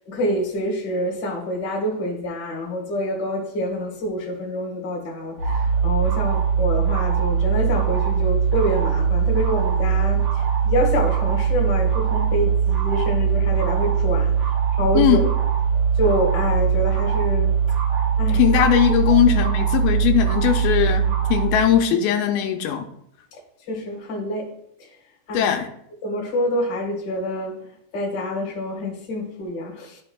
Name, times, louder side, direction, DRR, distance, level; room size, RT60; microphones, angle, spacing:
voice 1, 0.1-10.2 10.6-14.3 14.7-15.2 16.0-17.5 18.2-18.4 19.1-19.2 23.7-24.5 25.3-25.5 26.0-27.5 27.9-30.0, left 1 dB, 45° left, -2 dB, 1.4 m, -26 dB
sound 1, 5.4-21.6, right 7 dB, 50° right, 4.4 m, -21 dB
voice 2, 18.3-22.9 25.3-25.7, left 10 dB, 85° left, 3 dB, 2.6 m, -19 dB
12.5 x 5.1 x 2.3 m, 0.72 s
omnidirectional pair, 4.3 m